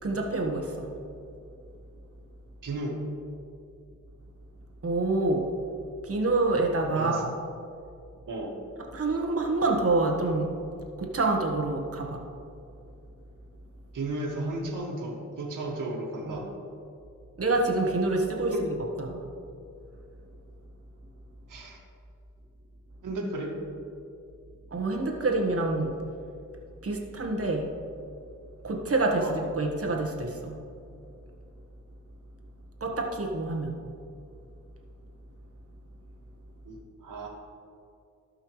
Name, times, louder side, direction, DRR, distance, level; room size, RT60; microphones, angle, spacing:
voice 1, 0.0-0.9 4.8-5.5 6.0-7.3 8.9-10.5 11.0-12.2 16.2-16.4 17.4-19.2 24.7-25.9 26.8-27.7 28.6-30.6 32.8-33.8, right 2 dB, 50° right, 1 dB, 1.4 m, -27 dB
voice 2, 2.6-3.0 6.9-7.2 8.3-8.6 13.9-16.5 18.5-18.6 21.5-21.8 23.0-23.5 29.2-29.4 36.7-37.3, right 2 dB, 80° right, -1 dB, 1.9 m, -34 dB
16.5 x 5.6 x 3.2 m, 2.6 s
cardioid pair, 75°, 31 cm